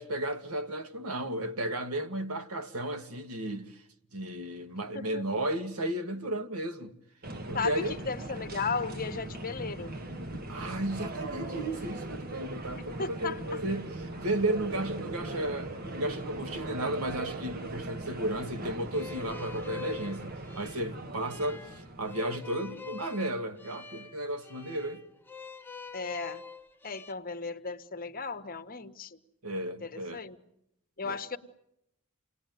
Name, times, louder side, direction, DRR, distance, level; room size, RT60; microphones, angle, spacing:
voice 1, 0.0-3.8 4.1-6.9 7.5-8.0 10.5-25.0 29.4-30.2 31.0-31.2, right 1 dB, 85° right, 1.9 m, -34 dB
voice 2, 4.9-5.2 7.5-9.9 13.0-13.6 25.9-26.4 26.8-29.2 29.8-30.4 31.0-31.4, left 4 dB, 40° left, 1.3 m, -35 dB
sound 1, 7.2-23.0, right 2 dB, 45° right, 1.7 m, -40 dB
sound 2, 18.9-27.1, left 6 dB, 10° left, 1.0 m, -46 dB
28.5 x 20.0 x 9.3 m
head